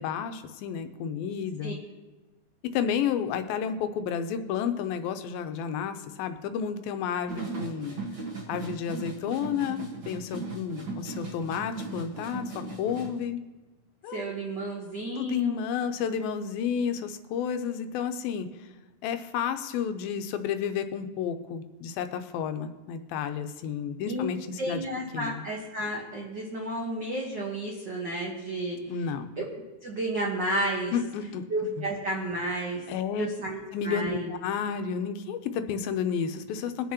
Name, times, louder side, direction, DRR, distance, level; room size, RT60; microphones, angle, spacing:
voice 1, 0.0-1.8 2.7-8.0 8.5-13.4 14.0-14.3 15.2-18.7 19.0-24.9 25.1-25.5 28.9-29.3 30.9-31.4 32.9-33.3 33.7-36.9, left 7 dB, 85° left, 9 dB, 2.5 m, -31 dB
sound 1, 7.3-13.2, right 3 dB, 45° right, 1.3 m, -38 dB
voice 2, 14.1-15.6 24.1-24.2 24.6-28.8 29.4-29.5 29.8-30.9 31.5-32.8 33.1-34.3, right 1 dB, 70° right, -2 dB, 1.0 m, -32 dB
22.0 x 7.4 x 2.9 m, 1.2 s
omnidirectional pair, 4.2 m